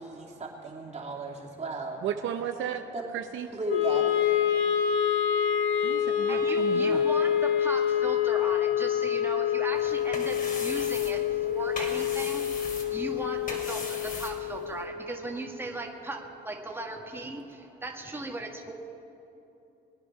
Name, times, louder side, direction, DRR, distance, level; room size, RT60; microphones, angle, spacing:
voice 1, 0.0-2.0 2.9-3.1 3.5-4.3 9.8-9.9, right 3 dB, 35° right, -1 dB, 2.7 m, -36 dB
voice 2, 2.0-2.8 3.1-3.5 5.8-7.0, right 9 dB, 80° right, 7 dB, 0.7 m, -34 dB
Wind instrument woodwind instrument, 3.7-15.9, left 9 dB, 70° left, 1.8 m, -27 dB
voice 3, 4.5-18.7, right 2 dB, 10° right, 1 dB, 1.6 m, -38 dB
sound 1, 9.7-14.9, left 3 dB, 45° left, 2.6 m, -40 dB
22.0 x 9.5 x 5.7 m, 2.9 s
cardioid pair, 90°, 20 cm